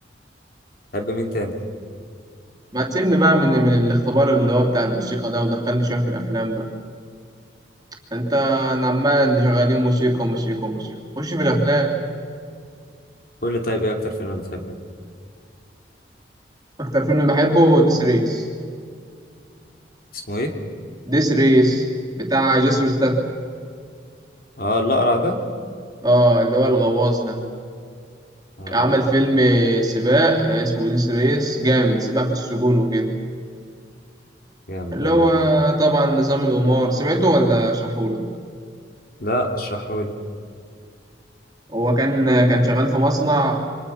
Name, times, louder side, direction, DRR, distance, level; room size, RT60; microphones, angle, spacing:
voice 1, 0.9-1.5 13.4-14.7 20.3-20.5 24.6-25.4 28.6-28.8 34.7-35.3 39.2-40.1, left 1 dB, 50° left, 3 dB, 2.8 m, -24 dB
voice 2, 2.7-6.7 8.1-11.9 16.8-18.5 21.1-21.9 22.2-23.2 26.0-27.5 28.7-33.2 34.9-38.3 41.7-43.6, right 1 dB, 20° right, -1 dB, 3.0 m, -19 dB
28.5 x 25.0 x 5.8 m, 2.2 s
head